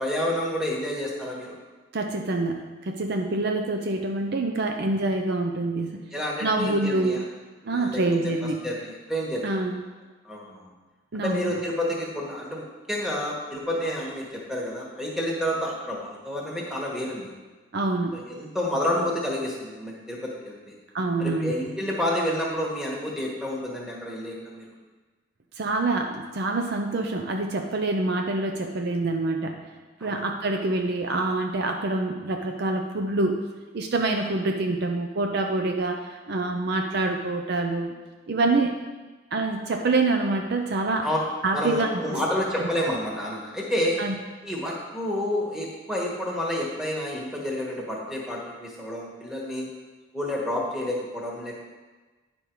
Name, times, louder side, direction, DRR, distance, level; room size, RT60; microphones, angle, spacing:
voice 1, 0.0-1.6 6.1-7.2 7.6-8.3 8.6-9.6 10.2-10.7 11.1-17.3 18.1-20.6 21.2-24.6 30.0-30.2 41.0-41.2 41.5-44.0 44.4-49.7 50.1-51.6, left 1 dB, 5° right, -3 dB, 1.5 m, -29 dB
voice 2, 1.9-6.1 6.4-7.2 7.7-8.6 9.4-9.8 11.1-11.6 17.7-18.2 20.9-21.5 25.6-29.7 30.0-33.4 33.7-37.9 38.3-38.7 39.3-41.1 41.4-42.2 44.0-44.1, right 2 dB, 55° right, 4 dB, 0.6 m, -26 dB
9.7 x 5.2 x 4.6 m, 1.3 s
head